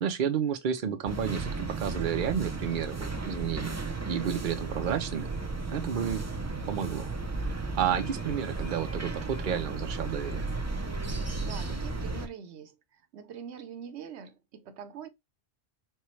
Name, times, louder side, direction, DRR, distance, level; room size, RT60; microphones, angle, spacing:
voice 1, 0.0-5.3 5.7-6.3 6.7-7.1 7.4-10.5, right 8 dB, 55° right, 0.7 m, -31 dB
sound 1, 1.1-12.3, right 3 dB, 25° right, 0.3 m, -34 dB
voice 2, 11.1-15.1, right 7 dB, 85° right, 0.9 m, -44 dB
4.4 x 2.3 x 3.0 m
omnidirectional pair, 1.1 m